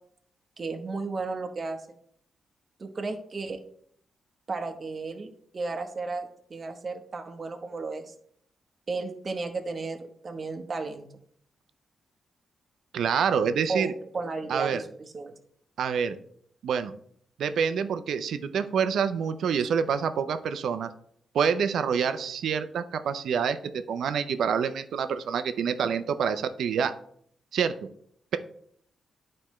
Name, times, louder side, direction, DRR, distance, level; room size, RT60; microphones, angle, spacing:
voice 1, 0.6-1.8 2.8-3.6 4.5-8.1 8.9-11.1 13.7-15.3 19.6-19.7, right 3 dB, 40° right, 4 dB, 0.9 m, -34 dB
voice 2, 12.9-13.9 14.5-14.8 15.8-16.2 16.6-16.9 17.4-20.9 21.3-27.0 27.5-27.8, right 7 dB, 80° right, 10 dB, 0.5 m, -27 dB
11.0 x 4.3 x 3.1 m, 0.66 s
cardioid pair, 105°, 0 cm